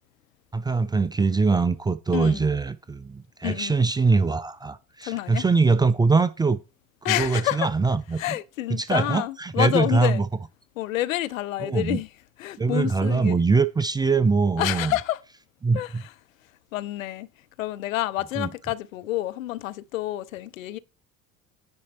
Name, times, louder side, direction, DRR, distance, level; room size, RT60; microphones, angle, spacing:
voice 1, 0.5-6.6 7.1-8.2 8.7-10.3 11.6-12.0 12.6-14.9 15.6-16.0 18.4-18.5, right 4 dB, 10° right, 0.4 m, -23 dB
voice 2, 2.1-2.4 3.4-3.7 5.0-5.4 7.0-7.7 8.2-10.2 10.8-12.1 12.4-13.4 14.6-15.2 15.7-16.1 16.7-17.3 17.6-20.8, left 15 dB, 70° left, 0.6 m, -28 dB
9.7 x 4.4 x 4.2 m
figure-of-eight pair, 60°, 41 cm